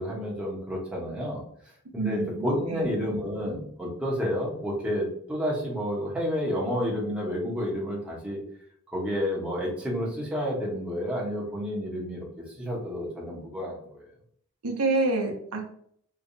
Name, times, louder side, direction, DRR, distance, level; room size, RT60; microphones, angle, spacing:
voice 1, 0.0-1.4 1.9-8.4 8.9-12.2 12.6-14.0, equal, 5° right, -5 dB, 1.0 m, -30 dB
voice 2, 2.0-2.8 14.6-15.6, right 3 dB, 85° right, 2 dB, 0.8 m, -28 dB
3.3 x 3.1 x 2.6 m, 0.64 s
head